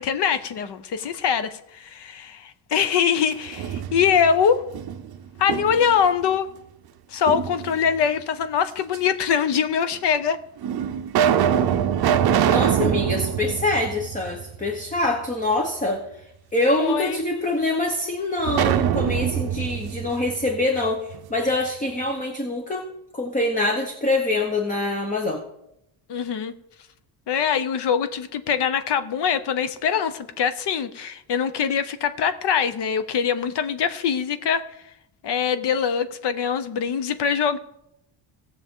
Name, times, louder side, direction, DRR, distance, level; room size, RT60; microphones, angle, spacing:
voice 1, 0.0-4.6 5.4-6.5 7.1-10.4 16.8-17.2 26.1-26.5 27.3-34.7 35.2-37.6, left 7 dB, 55° left, 11 dB, 0.9 m, -23 dB
sound 1, 3.3-4.3 4.7-6.0 7.3-8.1 8.9-9.0 9.9-10.0 10.6-14.7 15.0-15.1 18.4-21.2, right 9 dB, 50° right, 0.7 m, -24 dB
voice 2, 12.5-16.0 16.5-21.0 21.3-22.8 23.1-25.4, left 2 dB, 15° left, 2 dB, 0.9 m, -24 dB
18.5 x 6.6 x 3.7 m, 0.81 s
cardioid pair, 175°, 49 cm